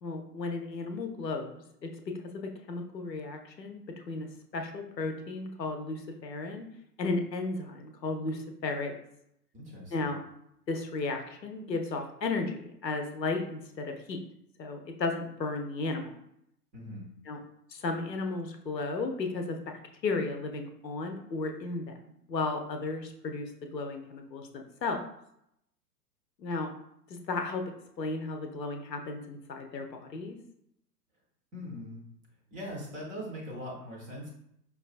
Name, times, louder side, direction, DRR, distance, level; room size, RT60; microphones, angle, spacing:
voice 1, 0.0-6.7 7.0-8.9 9.9-10.2 10.7-14.2 14.6-16.1 17.3-17.4 17.7-25.0 26.4-26.7 27.1-27.6 28.0-30.4, left 3 dB, 80° left, 4 dB, 0.7 m, -34 dB
voice 2, 9.5-10.1 16.7-17.1 31.5-32.1 32.5-34.3, equal, 15° right, -3 dB, 0.6 m, -41 dB
5.0 x 2.3 x 2.4 m, 0.76 s
figure-of-eight pair, 105°, 49 cm